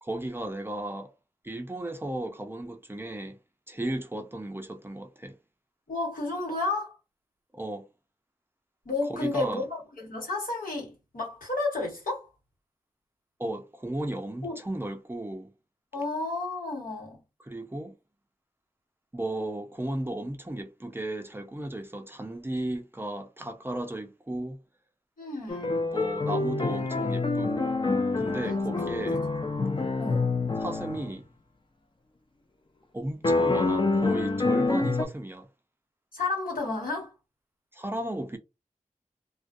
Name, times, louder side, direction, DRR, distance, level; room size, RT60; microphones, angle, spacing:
voice 1, 0.0-1.1 1.4-3.4 3.7-5.4 7.5-7.9 9.1-9.6 13.4-15.5 17.4-18.0 19.1-24.6 25.9-27.8 28.2-29.2 30.6-31.3 32.9-35.5 37.7-38.4, right 1 dB, 15° right, 0.4 m, -35 dB
voice 2, 5.9-7.0 8.8-12.3 14.4-14.6 15.9-17.2 25.2-25.7 29.8-30.3 36.1-37.1, left 3 dB, 85° left, 1.4 m, -32 dB
sound 1, 25.5-31.1 33.2-35.0, left 3 dB, 35° left, 0.5 m, -26 dB
2.2 x 2.2 x 2.5 m
cardioid pair, 55°, 14 cm